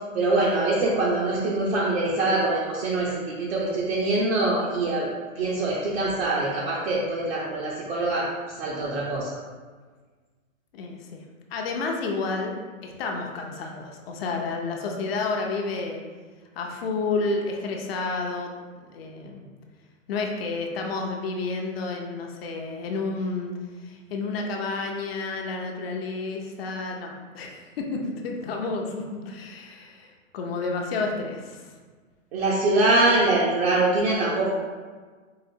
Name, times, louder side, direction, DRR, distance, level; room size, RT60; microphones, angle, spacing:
voice 1, 0.1-5.1 5.4-8.3 8.6-9.3 32.3-34.5, right 2 dB, 50° right, -5 dB, 0.7 m, -24 dB
voice 2, 10.7-11.2 11.5-12.5 12.8-16.0 16.6-18.5 18.9-19.5 20.1-23.5 23.8-31.7, left 3 dB, 50° left, 1 dB, 0.6 m, -30 dB
4.8 x 2.5 x 2.7 m, 1.4 s
hypercardioid pair, 150°, 40 cm